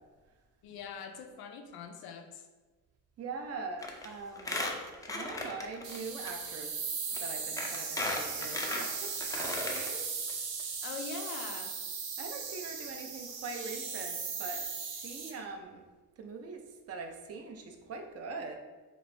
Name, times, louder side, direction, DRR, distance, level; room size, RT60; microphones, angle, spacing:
voice 1, 0.6-2.5 10.8-11.7, left 6 dB, 90° left, 5 dB, 0.6 m, -43 dB
voice 2, 3.2-6.7 7.2-10.1 12.2-15.8 16.2-16.6 16.9-18.6, right 4 dB, 45° right, 5 dB, 0.5 m, -42 dB
Squeak, 3.8-4.1 4.4-6.0 6.3-6.4 7.1-7.2 7.6-9.9 10.3-10.4 10.6-10.7, left 2 dB, 10° left, 0.3 m, -36 dB
sound 1, 5.8-15.3, right 5 dB, 85° right, 0.7 m, -38 dB
4.2 x 2.6 x 3.2 m, 1.3 s
cardioid pair, 140°, 36 cm